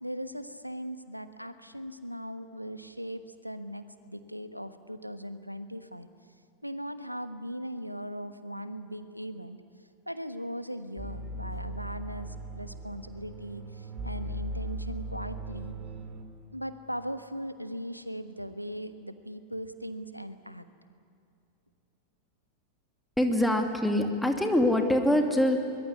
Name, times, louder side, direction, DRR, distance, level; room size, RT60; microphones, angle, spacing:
voice 1, 0.0-6.1 6.6-9.6 10.1-15.7 16.5-20.6, equal, 90° right, 11 dB, 1.2 m, -39 dB
sound 1, 11.0-16.2, right 1 dB, 25° right, 3.5 m, -38 dB
voice 2, 23.2-25.6, left 1 dB, ahead, 3 dB, 2.6 m, -24 dB
23.5 x 21.5 x 9.8 m, 2.5 s
figure-of-eight pair, 90°, 0 cm